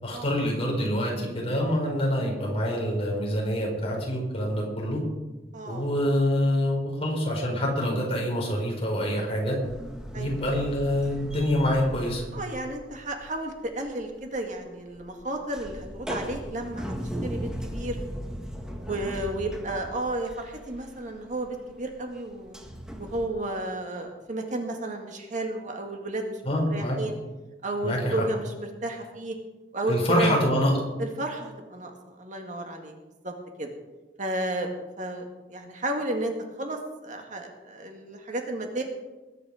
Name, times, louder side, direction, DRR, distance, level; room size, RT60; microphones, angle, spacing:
voice 1, 0.0-5.0 5.6-9.6 10.1-12.2 26.4-27.0 27.8-28.2 29.9-30.7, equal, 35° left, -1 dB, 4.7 m, -26 dB
voice 2, 5.5-5.9 10.1-10.3 12.3-16.9 17.2-18.0 18.8-22.6 23.0-26.4 26.7-27.1 27.6-29.3 29.7-30.4 31.0-32.9 33.2-33.7 34.2-38.8, right 1 dB, 45° right, 3 dB, 1.9 m, -32 dB
sound 1, 9.6-13.4 13.7-23.3, equal, 5° right, 1.6 m, -38 dB
20.5 x 9.8 x 5.0 m, 1.1 s
head